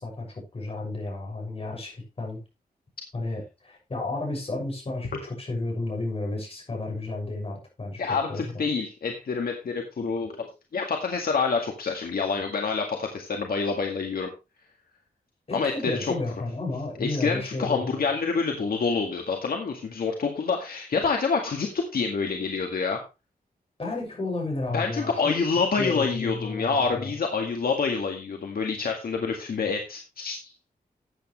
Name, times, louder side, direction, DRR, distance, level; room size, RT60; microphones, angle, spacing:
voice 1, 0.0-2.4 3.1-8.0 8.3-8.6 15.5-18.1 23.8-25.4 25.8-27.2, left 2 dB, 40° left, 0 dB, 6.5 m, -32 dB
voice 2, 8.0-14.3 15.5-16.1 17.0-23.0 24.7-30.5, left 5 dB, 70° left, 2 dB, 2.0 m, -27 dB
13.5 x 8.9 x 3.2 m, 0.28 s
wide cardioid pair, 150°, 16 cm